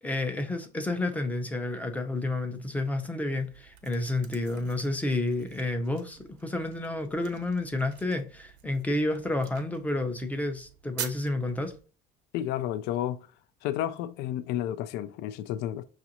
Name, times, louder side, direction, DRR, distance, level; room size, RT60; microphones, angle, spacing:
voice 1, 0.0-11.7, left 2 dB, 10° left, 0.6 m, -30 dB
sound 1, 3.4-11.8, right 9 dB, 80° right, 0.8 m, -46 dB
voice 2, 12.3-13.3 13.6-15.8, left 12 dB, 70° left, 0.4 m, -31 dB
5.9 x 2.5 x 2.8 m
cardioid pair, 130°, 18 cm